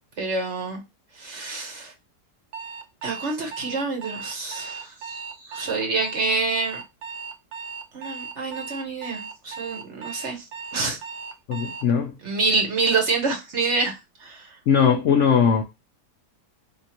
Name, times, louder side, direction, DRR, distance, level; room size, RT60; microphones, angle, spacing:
voice 1, 0.2-0.8 1.2-1.9 3.0-6.8 7.9-10.4 10.7-11.0 12.2-13.9 14.2-14.5, right 3 dB, 50° right, 1.0 m, -27 dB
Alarm, 2.5-11.9, right 5 dB, 80° right, 1.2 m, -37 dB
voice 2, 11.5-12.1 14.7-15.6, left 7 dB, 70° left, 0.7 m, -19 dB
3.6 x 2.8 x 2.8 m
omnidirectional pair, 1.8 m